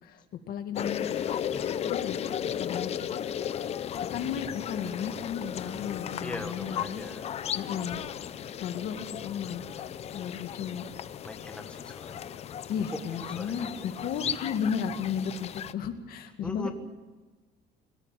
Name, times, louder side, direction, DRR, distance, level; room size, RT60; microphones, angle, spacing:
voice 1, 0.0-1.0 1.8-2.9 4.1-7.0 7.5-8.0 8.6-9.6 10.1-10.8 12.7-16.7, left 7 dB, 55° left, 7 dB, 2.0 m, -34 dB
sound 1, 0.7-15.7, left 9 dB, 35° left, 0.7 m, -35 dB
voice 2, 1.1-1.7 6.2-7.3 11.2-12.6 12.9-13.9 16.4-16.7, left 2 dB, 5° left, 4 dB, 1.4 m, -41 dB
22.5 x 14.5 x 9.1 m, 1.3 s
cardioid pair, 180°, 19 cm